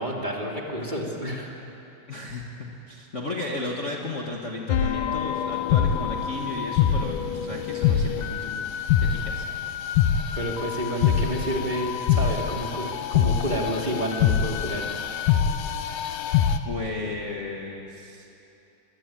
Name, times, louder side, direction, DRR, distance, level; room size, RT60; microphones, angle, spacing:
voice 1, 0.0-1.6 10.4-14.9, equal, 15° right, -1 dB, 2.3 m, -29 dB
voice 2, 2.1-9.5 16.6-18.3, left 2 dB, 50° left, -1 dB, 0.8 m, -34 dB
sound 1, 4.7-16.6, left 8 dB, 70° left, 2.3 m, -25 dB
22.5 x 21.5 x 9.0 m, 2.9 s
omnidirectional pair, 4.0 m